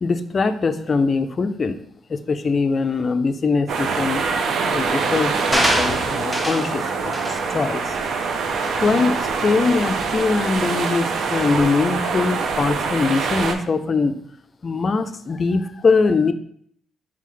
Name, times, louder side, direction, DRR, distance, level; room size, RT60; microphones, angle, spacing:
voice 1, 0.0-1.8 2.1-4.3 4.7-8.0 8.6-14.2 14.6-16.3, left 4 dB, 40° left, 9 dB, 0.3 m, -22 dB
sound 1, 3.7-13.5, right 4 dB, 65° right, 0.5 m, -24 dB
sound 2, 5.5-6.7 7.1-7.4 7.9-8.1, equal, 15° right, 0.8 m, -23 dB
3.8 x 3.3 x 3.3 m, 0.64 s
cardioid pair, 90°, 0 cm